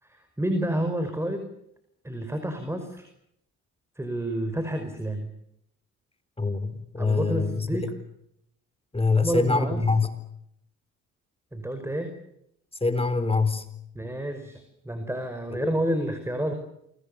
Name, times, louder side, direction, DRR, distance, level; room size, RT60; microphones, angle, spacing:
voice 1, 0.0-1.4 2.0-3.1 4.0-5.3 7.0-7.9 9.2-9.8 11.5-12.1 14.0-16.5, right 1 dB, 10° right, 7 dB, 5.5 m, -29 dB
voice 2, 6.4-8.0 8.9-10.1 12.8-13.7 15.5-15.7, left 3 dB, 20° left, 12 dB, 4.1 m, -25 dB
29.0 x 24.0 x 7.0 m, 0.76 s
cardioid pair, 90°, 30 cm